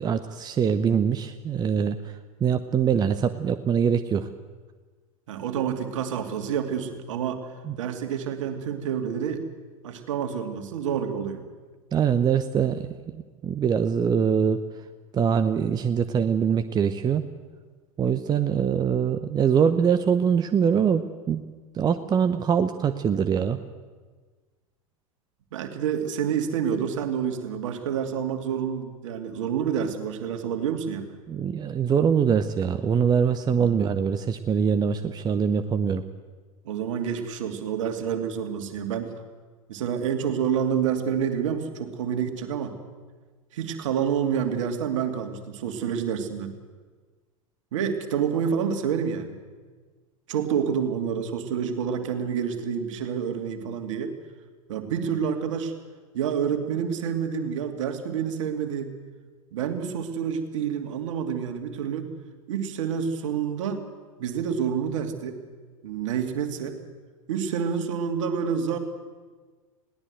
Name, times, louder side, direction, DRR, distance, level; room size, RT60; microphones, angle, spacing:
voice 1, 0.0-2.1 2.4-4.3 7.7-7.8 11.9-12.9 13.1-14.6 15.1-17.2 18.0-21.4 21.7-23.6 31.3-36.0, right 7 dB, 20° right, 10 dB, 0.9 m, -23 dB
voice 2, 5.3-7.5 7.8-9.4 9.8-11.4 25.5-31.2 36.6-39.1 39.7-42.8 43.5-46.5 47.7-49.4 50.3-54.2 54.7-55.7 56.1-58.9 59.5-62.1 62.5-63.9 64.2-65.4 65.8-66.8 67.3-68.8, right 7 dB, 60° right, 6 dB, 2.6 m, -28 dB
21.0 x 17.5 x 8.0 m, 1.4 s
figure-of-eight pair, 85°, 18 cm